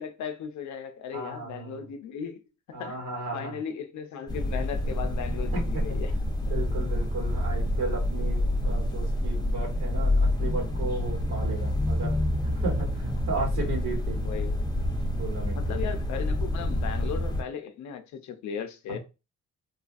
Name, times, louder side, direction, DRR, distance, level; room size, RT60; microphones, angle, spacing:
voice 1, 0.0-2.4 2.8-3.0 3.3-6.1 14.2-14.6 15.5-19.0, left 7 dB, 70° left, 0.6 m, -36 dB
voice 2, 1.1-1.8 2.7-3.6 5.5-6.0 6.5-12.2 12.4-14.3 15.2-15.6 18.9-19.0, right 3 dB, 80° right, 1.5 m, -35 dB
sound 1, 4.3-17.4, left 1 dB, 15° left, 0.7 m, -27 dB
2.7 x 2.4 x 2.5 m
cardioid pair, 90°, 30 cm